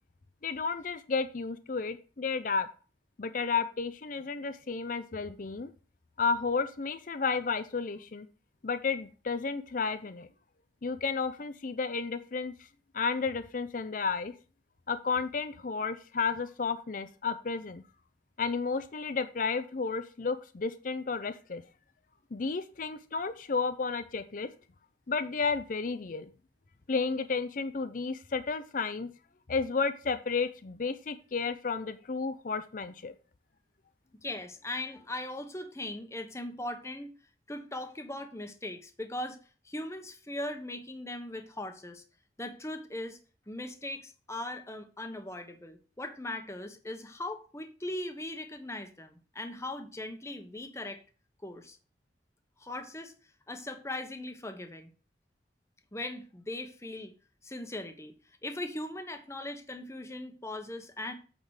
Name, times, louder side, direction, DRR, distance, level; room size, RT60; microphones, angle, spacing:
voice 1, 0.4-2.7 3.2-5.7 6.2-8.3 8.6-10.3 10.8-12.5 12.9-14.3 14.9-17.8 18.4-21.6 22.3-24.5 25.1-26.3 26.9-29.1 29.5-33.1, left 4 dB, 50° left, 0.5 m, -32 dB
voice 2, 34.2-37.1 37.5-39.4 39.6-42.0 42.4-43.2 43.5-51.0 51.4-51.8 52.6-53.1 53.5-54.9 55.9-57.1 57.4-58.1 58.4-61.1, left 1 dB, 15° left, 1.1 m, -39 dB
8.7 x 3.8 x 6.4 m
head